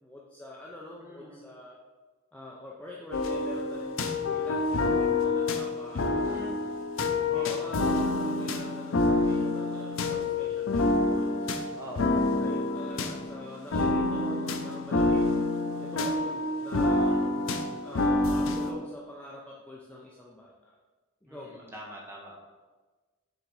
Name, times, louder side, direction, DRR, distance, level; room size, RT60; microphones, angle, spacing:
voice 1, 0.0-1.8 2.3-6.4 7.3-11.8 12.4-15.5 15.8-17.2 17.8-20.7 21.2-21.7, left 1 dB, 5° left, -4 dB, 0.5 m, -44 dB
voice 2, 1.0-1.4 6.1-6.6 7.3-7.7 11.7-12.2 17.1-17.5 21.3-22.4, equal, 10° right, -2 dB, 1.1 m, -44 dB
sound 1, 3.1-18.7, left 2 dB, 70° left, 0.6 m, -27 dB
6.5 x 3.8 x 4.7 m, 1.3 s
head